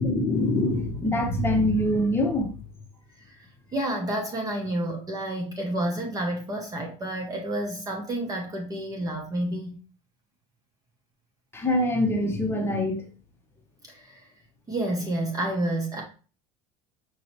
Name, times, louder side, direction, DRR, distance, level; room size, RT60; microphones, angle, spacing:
voice 1, 0.0-2.5 11.5-13.0, left 1 dB, 15° left, 1.0 m, -24 dB
voice 2, 3.7-9.8 13.9-14.3 14.7-16.0, right 1 dB, 20° right, 0.8 m, -30 dB
5.5 x 2.7 x 2.8 m
supercardioid pair, 125°, 17 cm